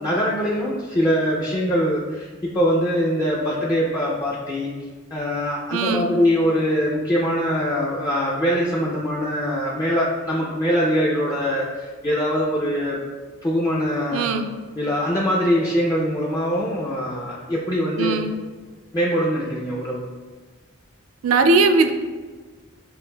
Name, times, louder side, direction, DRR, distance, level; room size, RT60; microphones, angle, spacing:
voice 1, 0.0-4.7 5.1-13.0 13.4-14.4 14.8-18.2 18.9-20.0, equal, 15° left, -6 dB, 0.3 m, -23 dB
voice 2, 5.7-6.1 14.1-14.5 18.0-18.3 21.2-21.9, right 3 dB, 80° right, 7 dB, 0.4 m, -19 dB
6.3 x 2.5 x 2.2 m, 1.4 s
head